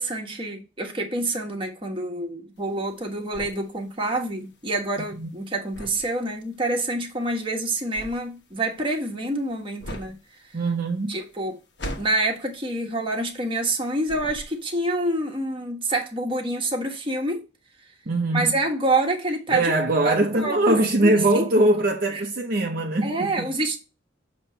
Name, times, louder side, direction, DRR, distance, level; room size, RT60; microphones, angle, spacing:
voice 1, 0.0-10.2 11.1-11.6 12.0-17.4 18.3-19.7 20.0-21.4 22.1-22.2 23.0-23.8, right 2 dB, 30° right, 1.4 m, -27 dB
sound 1, 2.6-13.8 14.0-14.9, equal, 65° left, 1.2 m, -41 dB
voice 2, 10.5-11.2 18.1-18.5 19.5-23.5, right 2 dB, 50° right, 0.7 m, -22 dB
7.1 x 3.0 x 5.6 m
head